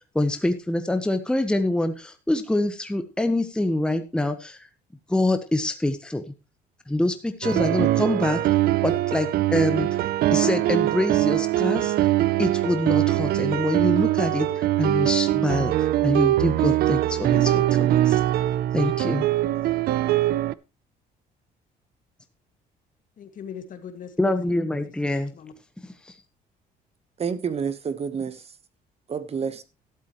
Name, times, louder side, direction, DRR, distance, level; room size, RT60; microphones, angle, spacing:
voice 1, 0.1-4.6 5.1-6.2 6.9-8.4 8.8-9.9 10.3-11.9 12.4-18.2 18.7-19.3 24.2-25.3 26.0-26.1, left 1 dB, 5° left, 1.1 m, -25 dB
sound 1, 7.4-20.5, right 14 dB, 65° right, 0.6 m, -22 dB
voice 2, 23.2-25.5, left 7 dB, 50° left, 2.0 m, -41 dB
voice 3, 27.2-28.5 29.1-29.6, right 6 dB, 35° right, 1.1 m, -29 dB
13.0 x 11.5 x 3.1 m
cardioid pair, 110°, 17 cm